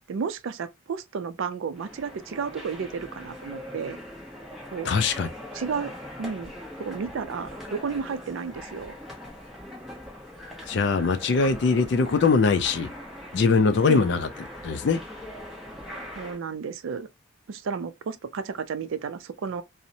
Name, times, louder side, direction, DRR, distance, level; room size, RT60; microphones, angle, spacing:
voice 1, 0.1-4.0 4.7-4.9 5.5-5.9 6.2-6.5 6.8-9.0 13.9-14.1 16.2-17.1 17.5-19.6, right 5 dB, 80° right, 0.4 m, -32 dB
sound 1, 1.7-16.4, left 1 dB, ahead, 0.7 m, -41 dB
voice 2, 4.9-5.3 10.7-12.9 13.3-14.3 14.6-15.0, left 4 dB, 55° left, 0.3 m, -22 dB
2.7 x 2.0 x 2.5 m
head